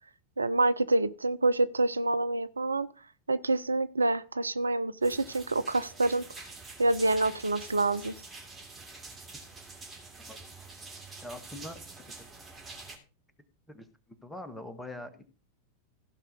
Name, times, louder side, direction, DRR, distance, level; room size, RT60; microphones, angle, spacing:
voice 1, 0.4-2.9 3.3-6.5 6.8-8.2, right 2 dB, 80° right, 0.5 m, -27 dB
sound 1, 5.0-13.0, right 3 dB, 15° right, 3.0 m, -46 dB
voice 2, 11.2-12.3 13.7-15.2, left 1 dB, 5° left, 1.5 m, -44 dB
15.5 x 5.5 x 5.3 m
figure-of-eight pair, 90°, 0 cm